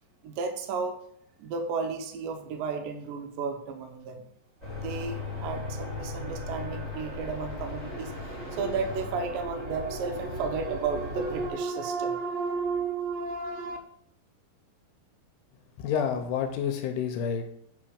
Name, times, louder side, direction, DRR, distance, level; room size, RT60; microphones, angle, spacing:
voice 1, 0.2-1.0 1.4-4.2 4.8-13.8, right 5 dB, 80° right, 5 dB, 2.1 m, -32 dB
sound 1, 4.6-11.5, left 3 dB, 15° right, 1.8 m, -37 dB
voice 2, 15.8-17.4, left 7 dB, 85° left, 5 dB, 2.5 m, -29 dB
7.7 x 4.1 x 5.0 m, 0.69 s
omnidirectional pair, 4.9 m